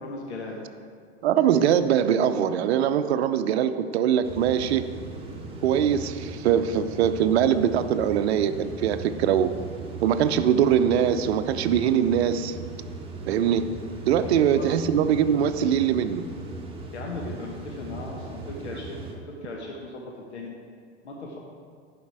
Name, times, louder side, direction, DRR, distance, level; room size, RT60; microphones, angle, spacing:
voice 1, 0.0-0.6 14.2-14.7 16.9-20.5 21.0-21.4, left 2 dB, 85° left, -1 dB, 1.2 m, -37 dB
voice 2, 1.2-4.9 5.6-9.5 10.0-12.6 13.3-13.7 14.0-16.2, right 9 dB, 70° right, 11 dB, 0.6 m, -22 dB
sound 1, 4.2-19.1, right 3 dB, 15° right, 1.5 m, -38 dB
11.0 x 5.1 x 4.7 m, 2.1 s
hypercardioid pair, 95°, 33 cm